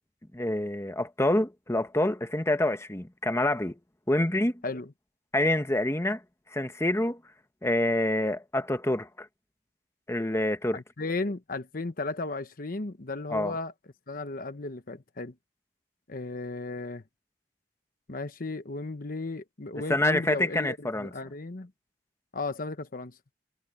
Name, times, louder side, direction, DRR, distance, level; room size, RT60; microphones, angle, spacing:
voice 1, 0.3-3.8 4.1-4.5 5.3-6.2 6.5-7.2 7.6-9.3 10.1-10.8 13.3-13.5 19.9-21.1, left 1 dB, 15° left, 1.3 m, -27 dB
voice 2, 10.7-13.7 14.1-15.3 16.1-17.0 18.1-21.7 22.3-23.1, left 3 dB, 55° left, 1.0 m, -35 dB
head